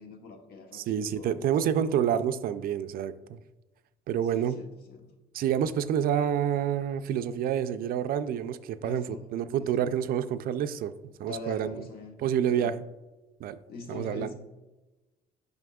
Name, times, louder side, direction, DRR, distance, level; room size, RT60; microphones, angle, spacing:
voice 1, 0.0-2.0 4.3-5.1 8.8-9.2 9.6-9.9 11.2-12.1 12.4-12.7 13.7-14.3, left 3 dB, 65° left, 4 dB, 1.0 m, -43 dB
voice 2, 0.7-3.4 4.1-4.6 5.3-10.9 11.2-11.8 12.2-12.8 13.4-13.6 13.9-14.3, right 9 dB, 60° right, 12 dB, 0.4 m, -28 dB
7.7 x 5.3 x 2.3 m, 1.1 s
cardioid pair, 110°, 17 cm